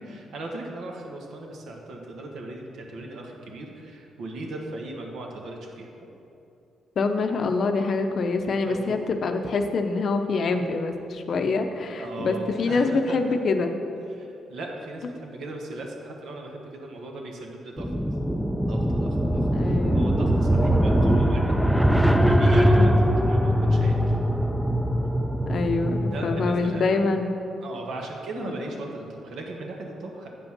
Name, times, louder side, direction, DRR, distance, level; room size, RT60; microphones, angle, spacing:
voice 1, 0.0-5.9 8.7-9.1 11.9-13.2 14.1-17.9 18.7-21.6 22.1-24.2 26.1-27.0 27.6-30.3, right 2 dB, 70° right, 1 dB, 1.3 m, -38 dB
voice 2, 7.0-13.7 19.5-20.2 22.7-23.0 25.5-27.4 28.4-28.5, left 3 dB, 55° left, 6 dB, 0.7 m, -25 dB
sound 1, 17.8-26.6, equal, ahead, 0.5 m, -21 dB
8.1 x 5.3 x 6.0 m, 2.7 s
cardioid pair, 90°, 0 cm